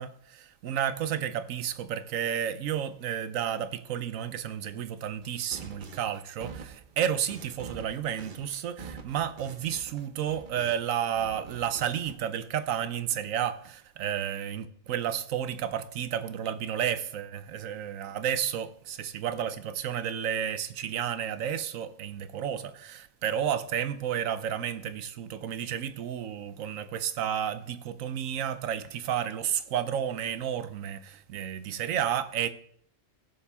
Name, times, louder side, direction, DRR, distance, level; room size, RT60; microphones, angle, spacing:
voice 1, 0.0-32.5, right 9 dB, 85° right, 1.1 m, -31 dB
sound 1, 5.2-10.9 11.2-12.1, right 5 dB, 45° right, 0.9 m, -46 dB
15.5 x 7.2 x 3.5 m
omnidirectional pair, 1.3 m